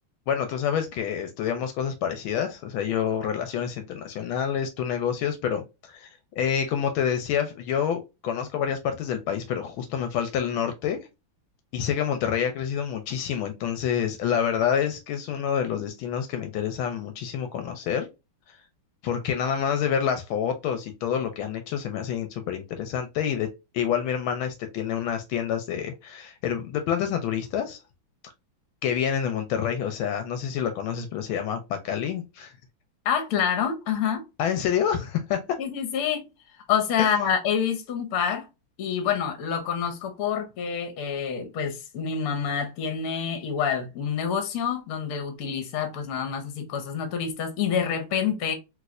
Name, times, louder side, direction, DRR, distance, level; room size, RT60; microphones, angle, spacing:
voice 1, 0.3-11.1 11.7-18.1 18.5-18.6 19.0-23.5 23.7-27.8 28.8-32.5 34.4-35.6 37.0-37.1, left 8 dB, 75° left, 1.3 m, -28 dB
voice 2, 33.0-34.2 35.6-36.3 36.7-38.5 38.8-48.5, left 7 dB, 60° left, 1.0 m, -27 dB
3.1 x 3.1 x 2.4 m
omnidirectional pair, 2.4 m